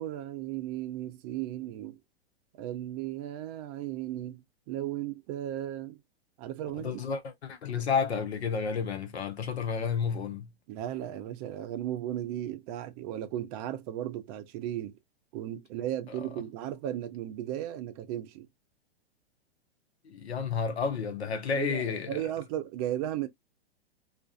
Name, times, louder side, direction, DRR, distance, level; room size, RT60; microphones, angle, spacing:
voice 1, 0.0-2.0 2.6-4.4 4.7-6.0 6.4-7.0 10.7-15.0 15.3-18.5 21.5-23.3, right 12 dB, 40° right, 0.5 m, -35 dB
voice 2, 6.8-10.5 20.0-22.2, left 6 dB, 85° left, 0.7 m, -31 dB
2.5 x 2.4 x 2.3 m
hypercardioid pair, 110°, 32 cm